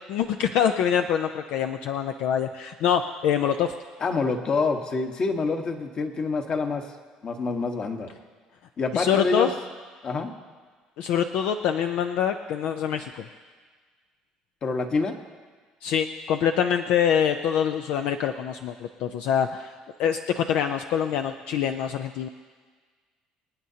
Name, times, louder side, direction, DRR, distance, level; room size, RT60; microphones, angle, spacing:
voice 1, 0.1-3.7 8.9-9.5 11.0-13.3 15.8-19.7 20.0-22.3, left 8 dB, 75° left, 6 dB, 0.5 m, -25 dB
voice 2, 4.0-6.8 7.2-8.1 8.8-9.5 10.0-10.3 14.6-15.2, left 4 dB, 45° left, 4 dB, 1.4 m, -26 dB
26.5 x 9.1 x 2.9 m, 1.5 s
supercardioid pair, 85°, 2 cm